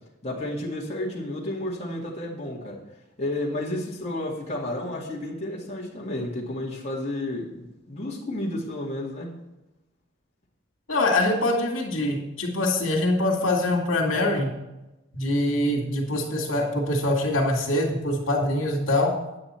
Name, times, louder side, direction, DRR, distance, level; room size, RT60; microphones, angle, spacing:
voice 1, 0.2-2.8 3.2-9.3, left 1 dB, 30° left, -5 dB, 1.9 m, -31 dB
voice 2, 10.9-14.5 15.1-19.1, left 1 dB, 80° left, -1 dB, 2.3 m, -24 dB
9.0 x 8.7 x 4.4 m, 0.99 s
head